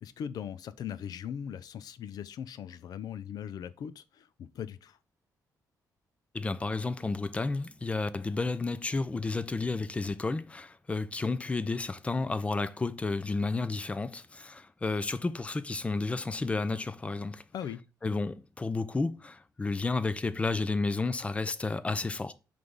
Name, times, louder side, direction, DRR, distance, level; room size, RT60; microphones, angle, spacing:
voice 1, 0.0-5.0 17.5-17.8, left 8 dB, 70° left, 0.6 m, -39 dB
voice 2, 6.3-17.4 18.0-22.3, left 3 dB, 20° left, 0.5 m, -31 dB
5.9 x 3.3 x 5.3 m
cardioid pair, 125°, 7 cm